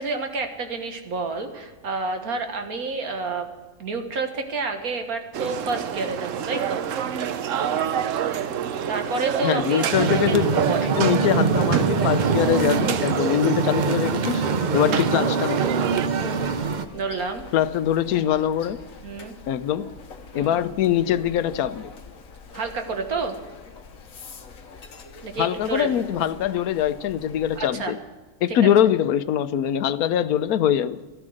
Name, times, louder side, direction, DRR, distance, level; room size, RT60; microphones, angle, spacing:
voice 1, 0.0-3.5 3.8-6.8 8.9-11.0 14.8-15.0 16.2-16.5 16.9-17.4 19.0-19.3 20.3-20.6 22.5-23.3 25.2-26.2 27.6-27.9 28.6-28.7, right 3 dB, 85° right, 5 dB, 2.0 m, -29 dB
sound 1, 5.3-16.1, right 8 dB, 65° right, 1.0 m, -28 dB
voice 2, 9.4-10.4 11.0-14.4 14.7-15.7 17.5-18.8 19.5-19.9 20.3-21.9 25.4-28.0 28.4-31.0, left 10 dB, 85° left, 13 dB, 1.2 m, -23 dB
sound 2, 9.9-16.9, right 5 dB, 45° right, 0.6 m, -24 dB
sound 3, 16.4-27.7, left 5 dB, 70° left, 1.5 m, -44 dB
13.5 x 13.5 x 6.4 m, 1.3 s
omnidirectional pair, 1.5 m